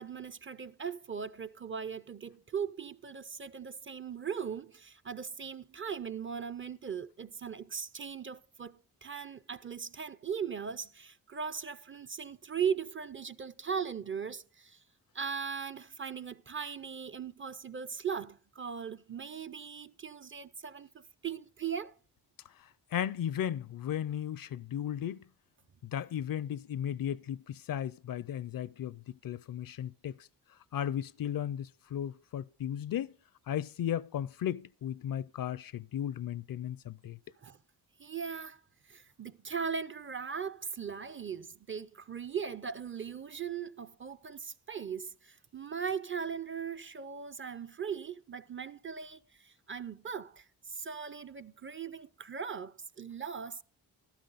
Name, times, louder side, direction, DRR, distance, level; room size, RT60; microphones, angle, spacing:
voice 1, 0.0-14.8 15.1-21.9 37.4-37.6 38.0-38.6 38.9-53.6, right 6 dB, 30° right, 0.5 m, -39 dB
voice 2, 22.9-25.2 25.8-30.2 30.7-33.1 33.5-37.2, left 10 dB, 60° left, 0.5 m, -35 dB
12.5 x 11.5 x 3.9 m
cardioid pair, 65°, 40 cm